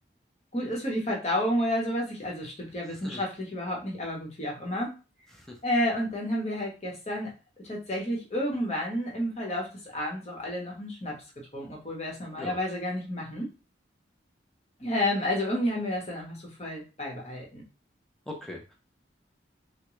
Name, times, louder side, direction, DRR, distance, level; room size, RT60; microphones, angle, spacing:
voice 1, 0.5-5.0 5.6-7.3 7.6-11.2 11.5-13.5 14.8-17.6, left 1 dB, 35° left, -2 dB, 1.0 m, -30 dB
voice 2, 2.9-3.2 5.3-5.6 12.4-12.6 18.3-18.7, left 1 dB, ahead, 0 dB, 0.6 m, -41 dB
3.6 x 2.2 x 3.1 m, 0.31 s
head